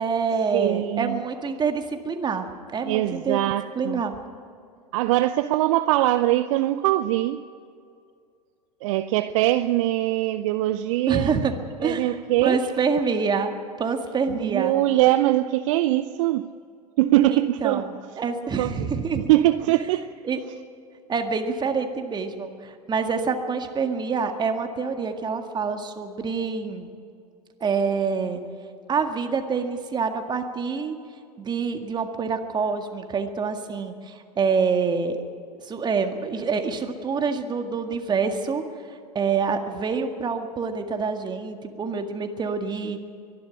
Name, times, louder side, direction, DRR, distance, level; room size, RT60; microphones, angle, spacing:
voice 1, 0.0-2.5 2.7-3.4 3.8-4.2 11.1-11.6 11.8-12.2 12.4-14.8 17.3-19.3 20.2-20.4 21.1-26.9 27.6-28.4 28.9-31.0 31.4-35.2 35.6-38.6 39.1-43.0, right 5 dB, 20° right, 1.9 m, -26 dB
voice 2, 0.5-1.2 2.9-4.0 4.9-7.4 8.8-11.3 11.8-12.6 14.3-16.4 17.0-17.9 18.6-18.9 19.3-20.1, right 15 dB, 50° right, 0.6 m, -22 dB
23.0 x 11.5 x 9.9 m
figure-of-eight pair, 90°, 21 cm